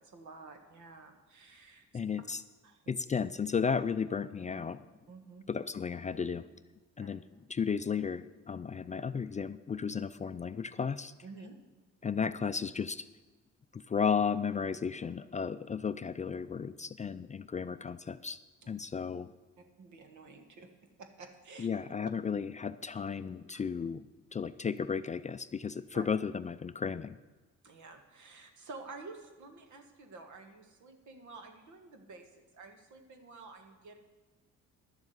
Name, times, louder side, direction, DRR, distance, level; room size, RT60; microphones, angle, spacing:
voice 1, 0.0-1.9 2.6-2.9 5.1-5.5 7.0-7.1 11.2-11.6 18.6-18.7 19.8-20.7 21.0-21.7 25.9-26.1 27.6-34.0, right 3 dB, 75° right, 5 dB, 1.7 m, -50 dB
voice 2, 1.9-2.4 2.9-4.8 5.5-6.5 7.0-7.2 7.5-11.1 12.0-13.1 13.7-18.4 18.7-19.3 21.6-24.0 24.3-27.2, left 6 dB, 25° left, 12 dB, 0.3 m, -34 dB
11.5 x 7.3 x 7.9 m, 1.2 s
cardioid pair, 90°, 30 cm